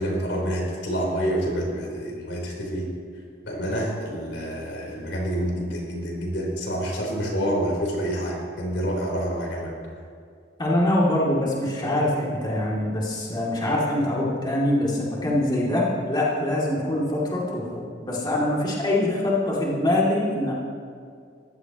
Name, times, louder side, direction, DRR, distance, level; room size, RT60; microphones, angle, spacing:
voice 1, 0.0-2.9 3.4-9.7, equal, 85° left, -2 dB, 4.2 m, -27 dB
voice 2, 10.6-20.5, left 1 dB, 25° left, -6 dB, 2.8 m, -24 dB
22.5 x 15.5 x 3.1 m, 2.2 s
head